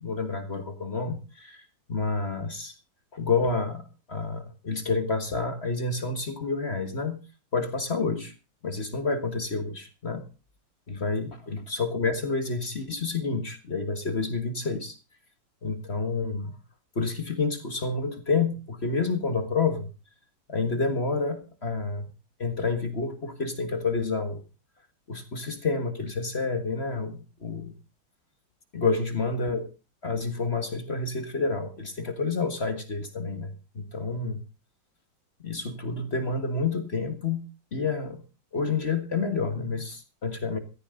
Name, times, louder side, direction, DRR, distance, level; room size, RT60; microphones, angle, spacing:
voice 1, 0.0-2.7 3.1-7.2 7.5-8.3 8.6-10.2 10.9-15.0 15.6-16.5 16.9-19.9 20.5-22.1 22.4-24.4 25.1-27.7 28.7-29.7 30.0-34.4 35.4-37.5 37.7-38.2 38.5-40.6, left 4 dB, 35° left, 8 dB, 1.8 m, -29 dB
16.0 x 14.5 x 3.8 m, 0.33 s
omnidirectional pair, 2.1 m